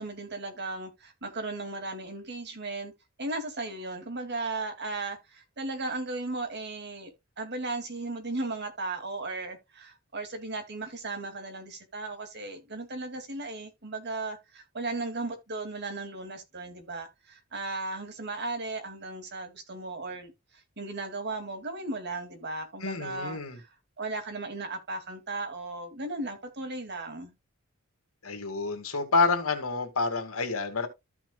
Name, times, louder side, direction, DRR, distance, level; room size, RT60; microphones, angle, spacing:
voice 1, 0.0-2.9 3.2-23.7 24.0-27.3, right 2 dB, 55° right, 2.5 m, -36 dB
voice 2, 22.8-23.6 28.2-30.9, left 4 dB, 85° left, 2.3 m, -28 dB
13.5 x 6.0 x 2.3 m
head